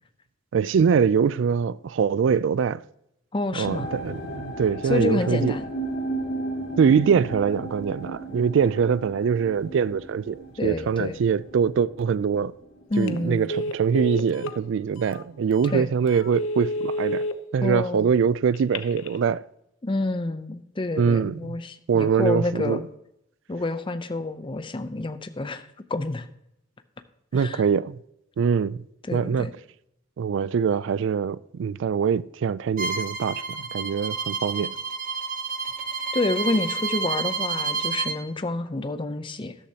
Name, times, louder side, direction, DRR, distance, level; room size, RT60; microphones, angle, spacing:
voice 1, 0.5-2.8 3.5-5.5 6.8-12.5 13.0-17.3 17.5-19.4 21.0-21.6 21.9-22.8 27.3-28.0 28.4-28.8 29.1-29.5 30.2-34.7, right 6 dB, 65° right, 0.3 m, -23 dB
voice 2, 3.3-3.9 4.8-5.7 10.6-11.2 12.9-13.5 15.6-15.9 17.6-18.1 19.8-22.8 23.5-26.3 27.3-27.6 29.1-29.5 36.1-39.5, left 2 dB, 25° left, 0.6 m, -28 dB
sound 1, 3.6-14.8 15.0-15.7 16.3-16.4, right 2 dB, 55° left, 1.8 m, -36 dB
Telephone, 12.9-13.2 13.5-14.6 15.1-15.2 15.6-15.8 16.2-17.3 18.5-19.2, equal, 75° left, 0.7 m, -29 dB
Bowed string instrument, 32.8-38.2, right 5 dB, 45° right, 0.9 m, -30 dB
13.0 x 11.5 x 2.8 m
head